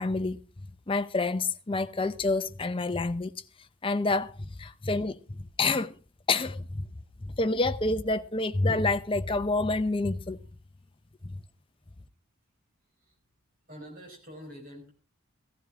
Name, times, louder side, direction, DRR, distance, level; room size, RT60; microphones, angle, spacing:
voice 1, 0.0-3.3 3.8-5.9 6.3-6.9 7.2-10.4 11.2-11.4, left 3 dB, 25° left, 0.6 m, -28 dB
voice 2, 13.7-14.9, equal, 40° right, 4.9 m, -46 dB
15.0 x 14.5 x 3.6 m
head